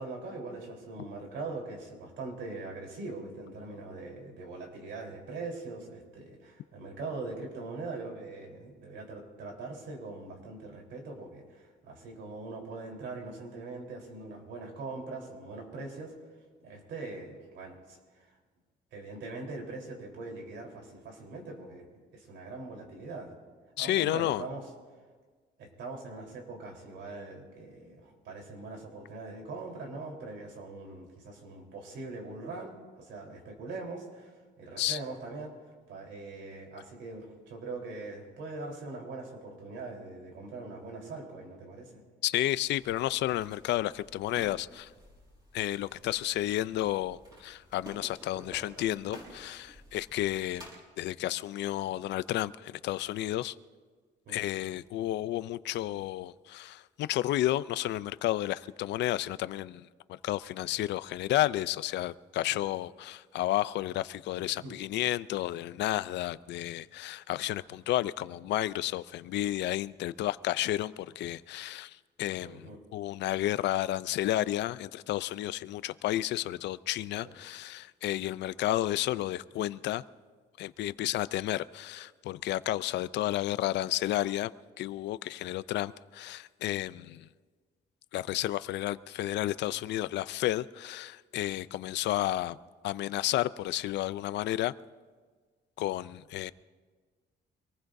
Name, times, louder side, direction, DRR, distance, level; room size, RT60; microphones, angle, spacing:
voice 1, 0.0-16.1 16.6-18.4 18.9-21.9 22.1-23.4 23.8-24.7 25.6-35.5 35.9-41.9 54.3-54.4 62.5-62.6 64.6-64.7 72.4-72.8 77.2-77.3, right 3 dB, 80° right, 1 dB, 3.8 m, -42 dB
voice 2, 23.8-24.5 34.8-35.0 42.2-44.9 45.5-50.7 51.0-53.6 54.3-80.0 80.6-84.5 84.8-87.3 88.1-92.6 92.8-94.7 95.8-96.5, left 14 dB, 70° left, 16 dB, 0.5 m, -32 dB
sound 1, 42.6-50.7, equal, 20° right, 5.5 m, -52 dB
25.5 x 19.5 x 2.6 m, 1.5 s
cardioid pair, 170°, 18 cm